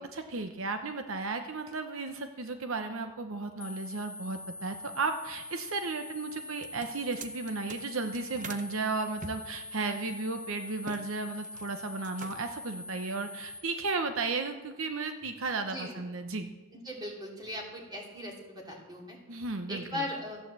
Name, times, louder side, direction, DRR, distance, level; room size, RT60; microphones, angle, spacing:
voice 1, 0.0-16.5 19.3-20.1, right 3 dB, 70° right, 7 dB, 0.9 m, -34 dB
sound 1, 3.6-13.6, left 2 dB, 25° left, 0.8 m, -44 dB
sound 2, 6.5-8.7 9.2-11.0 11.3-11.7 12.0-12.6, right 4 dB, 35° right, 0.7 m, -45 dB
voice 2, 15.7-16.0 16.8-19.2 19.7-20.4, left 1 dB, 20° right, -1 dB, 2.8 m, -38 dB
14.0 x 8.9 x 7.5 m, 1.3 s
head